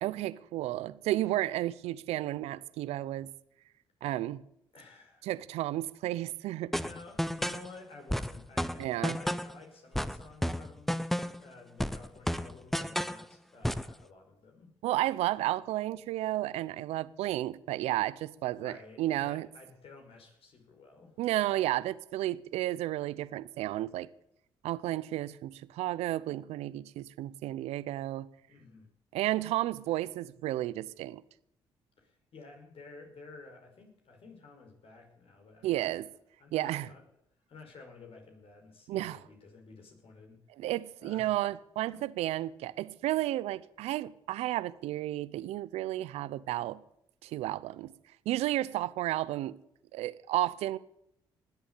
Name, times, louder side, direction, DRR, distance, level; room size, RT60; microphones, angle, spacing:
voice 1, 0.0-3.3 4.0-4.4 5.2-6.7 8.8-9.2 14.8-19.5 21.2-24.1 24.6-28.3 29.1-31.2 35.6-36.1 36.5-36.9 38.9-39.2 40.6-46.8 47.2-47.9 48.3-49.6 49.9-50.8, right 15 dB, 80° right, 0.7 m, -32 dB
voice 2, 4.7-5.3 6.7-14.7 18.5-21.2 28.5-28.9 32.0-35.9 36.4-37.0 37.5-40.4 41.0-41.4 41.9-42.0, left 3 dB, 60° left, 5.5 m, -52 dB
sound 1, 6.7-7.7 8.1-9.6 9.9-11.5 11.8-13.2 13.6-13.9, equal, ahead, 0.9 m, -32 dB
20.0 x 8.3 x 8.4 m
hypercardioid pair, 50°, 11 cm